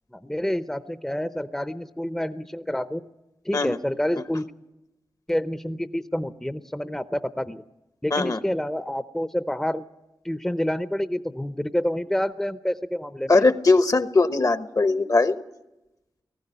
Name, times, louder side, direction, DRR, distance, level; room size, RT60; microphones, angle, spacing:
voice 1, 0.1-3.0 3.4-4.5 5.3-7.6 8.0-9.8 10.2-13.4, left 1 dB, 5° left, 11 dB, 0.7 m, -28 dB
voice 2, 13.3-15.4, left 3 dB, 45° left, 11 dB, 1.0 m, -20 dB
19.0 x 15.0 x 9.8 m, 0.97 s
cardioid pair, 60°, 8 cm